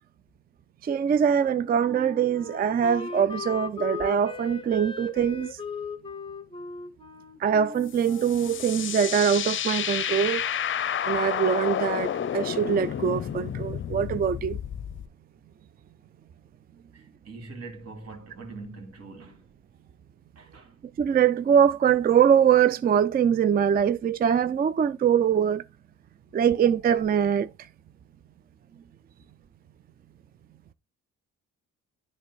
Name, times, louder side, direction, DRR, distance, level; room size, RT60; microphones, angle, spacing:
voice 1, 0.8-5.5 7.4-10.5 11.1-14.6 21.0-25.6 26.3-27.5, right 8 dB, 30° right, 0.4 m, -23 dB
Wind instrument woodwind instrument, 1.4-8.9, left 4 dB, 15° left, 0.9 m, -38 dB
sound 1, 7.9-15.1, left 9 dB, 40° left, 0.6 m, -30 dB
voice 2, 16.9-19.4 20.4-20.7, right 3 dB, 55° right, 2.4 m, -43 dB
10.0 x 3.4 x 4.6 m
cardioid pair, 90°, 30 cm